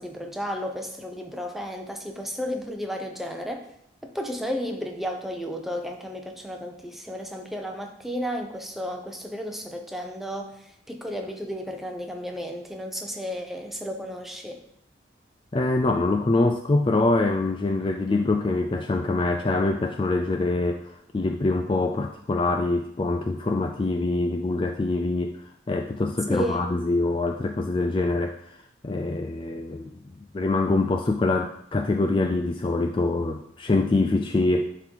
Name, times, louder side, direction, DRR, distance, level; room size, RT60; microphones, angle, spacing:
voice 1, 0.0-3.7 4.0-14.6 26.3-26.7, equal, ahead, 2 dB, 0.8 m, -33 dB
voice 2, 15.5-34.6, left 2 dB, 25° left, 5 dB, 0.3 m, -25 dB
10.0 x 3.9 x 4.7 m, 0.72 s
head